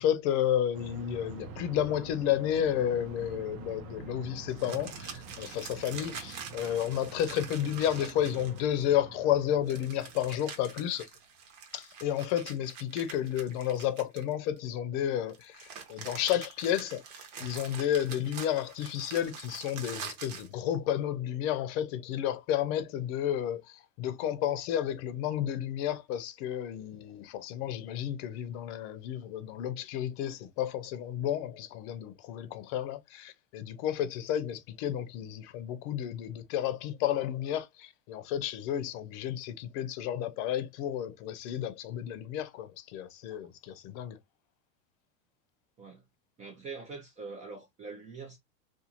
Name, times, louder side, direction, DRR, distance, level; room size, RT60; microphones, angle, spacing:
voice 1, 0.0-11.1 11.7-17.0 17.4-44.2, left 10 dB, 55° left, 0.6 m, -31 dB
sound 1, 0.7-11.0, right 6 dB, 90° right, 0.9 m, -46 dB
sound 2, 4.5-8.8 9.7-14.6 15.3-20.5, right 6 dB, 55° right, 1.0 m, -45 dB
voice 2, 46.4-48.4, right 4 dB, 20° right, 0.3 m, -44 dB
2.5 x 2.4 x 2.8 m
supercardioid pair, 140°, 42 cm